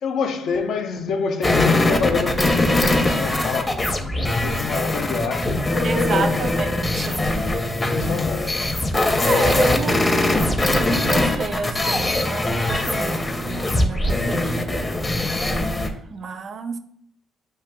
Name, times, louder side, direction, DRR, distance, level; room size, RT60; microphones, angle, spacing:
voice 1, 0.0-6.5 7.7-8.7, left 5 dB, 75° left, 0.5 m, -27 dB
sound 1, 1.4-15.9, left 1 dB, 25° left, 0.6 m, -21 dB
voice 2, 5.8-7.3 9.2-10.6 10.9-14.9 16.1-16.8, right 4 dB, 55° right, 0.5 m, -30 dB
8.1 x 2.8 x 2.2 m
cardioid pair, 90°, 0 cm